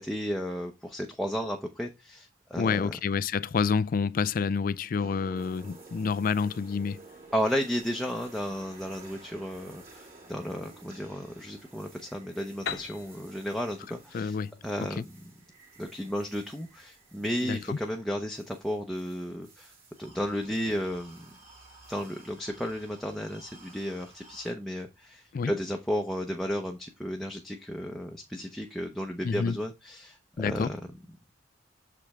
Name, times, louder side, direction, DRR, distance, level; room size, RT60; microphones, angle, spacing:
voice 1, 0.0-2.9 7.3-14.4 14.6-15.1 15.8-19.7 20.0-21.3 21.9-30.7, equal, ahead, 0.7 m, -33 dB
voice 2, 2.6-7.0 14.1-14.5 14.8-15.0 17.4-17.8 25.3-25.5 29.2-29.6 30.4-30.7, left 5 dB, 45° left, 0.3 m, -28 dB
sound 1, 5.0-24.5, right 2 dB, 50° right, 2.7 m, -53 dB
Piano, 12.7-16.3, left 6 dB, 65° left, 1.0 m, -42 dB
7.0 x 5.1 x 3.5 m
head